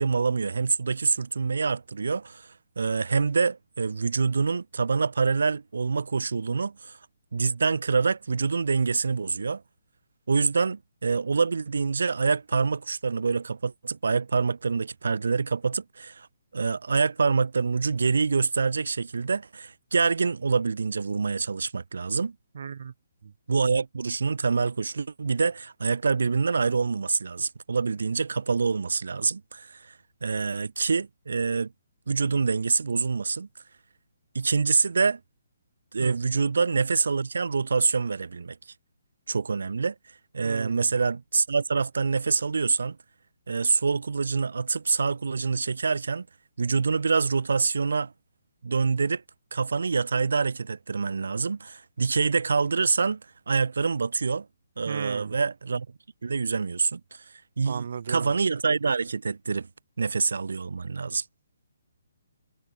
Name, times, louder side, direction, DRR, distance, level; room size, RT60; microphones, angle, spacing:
voice 1, 0.0-2.5 2.8-7.0 7.3-9.6 10.3-16.3 16.5-22.3 23.5-29.9 30.2-31.7 32.1-33.5 34.3-35.2 35.9-38.6 39.3-39.9 40.3-43.0 43.5-46.3 46.6-48.1 48.6-49.2 49.5-53.2 53.5-54.5 54.8-55.9 56.2-57.2 57.6-59.7 60.0-61.2, right 4 dB, 80° right, 5.8 m, -26 dB
voice 2, 22.5-22.9 23.2-23.3 36.0-36.2 40.4-40.9 54.9-55.4 57.7-58.3, right 7 dB, 50° right, 7.2 m, -35 dB
hypercardioid pair, 175°, 0 cm